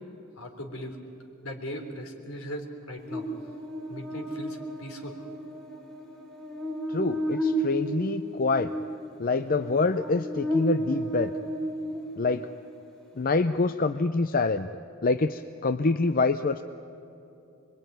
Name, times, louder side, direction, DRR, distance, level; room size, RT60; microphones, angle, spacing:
voice 1, 0.4-1.0 1.4-3.3 3.9-5.2, equal, 85° left, 4 dB, 3.7 m, -38 dB
Buzz, 3.1-12.5, right 1 dB, 5° left, 2.5 m, -33 dB
voice 2, 6.9-8.7 9.2-11.3 12.2-12.5 13.2-14.7 15.0-16.6, left 3 dB, 40° left, 9 dB, 0.6 m, -26 dB
26.0 x 23.0 x 9.4 m, 2.8 s
head